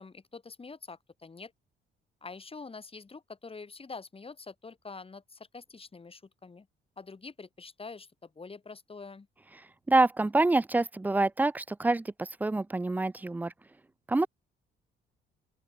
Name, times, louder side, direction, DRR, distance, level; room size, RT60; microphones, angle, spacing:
voice 1, 0.0-1.5 2.2-6.7 7.0-9.3, left 4 dB, 30° left, 4.7 m, -46 dB
voice 2, 9.9-13.5 14.1-14.3, right 2 dB, 10° right, 0.3 m, -26 dB
open air
cardioid pair, 90°, 20 cm